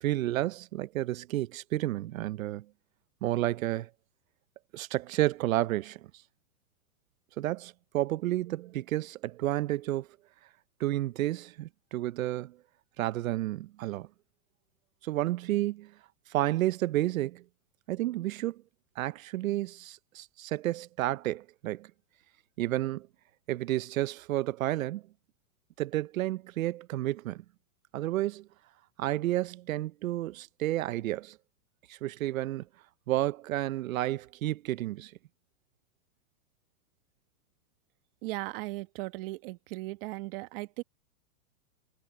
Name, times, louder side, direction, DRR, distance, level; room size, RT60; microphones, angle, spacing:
voice 1, 0.0-2.7 3.2-3.9 4.7-6.1 7.4-10.1 10.8-12.6 13.0-14.1 15.0-15.9 16.3-17.4 17.9-18.6 19.0-21.9 22.6-23.1 23.5-25.0 25.8-27.4 27.9-28.5 29.0-31.4 31.9-32.6 33.1-35.1, right 15 dB, 70° right, 0.8 m, -31 dB
voice 2, 38.2-40.8, right 21 dB, 40° right, 1.3 m, -37 dB
supercardioid pair, 150°, 42 cm